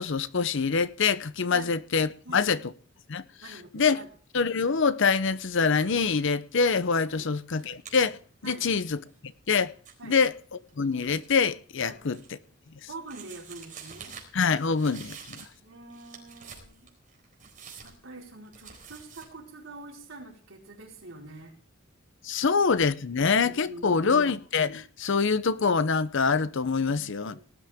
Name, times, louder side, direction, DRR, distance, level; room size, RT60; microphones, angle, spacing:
voice 1, 0.0-2.6 3.1-4.0 4.3-8.2 8.4-9.7 10.0-12.2 14.3-15.4 22.2-27.4, left 5 dB, 65° left, 0.7 m, -25 dB
voice 2, 3.4-4.1 7.1-7.3 8.4-8.6 10.0-10.2 11.8-12.0 12.9-14.2 15.6-16.9 17.8-21.6 22.3-22.4 23.5-24.2 26.8-27.5, right 2 dB, 70° right, 4.5 m, -45 dB
sound 1, 6.6-7.0 7.4-11.4 11.8-12.6 13.1-15.6 15.9-19.3, right 6 dB, 40° right, 4.1 m, -48 dB
19.0 x 12.0 x 3.6 m
head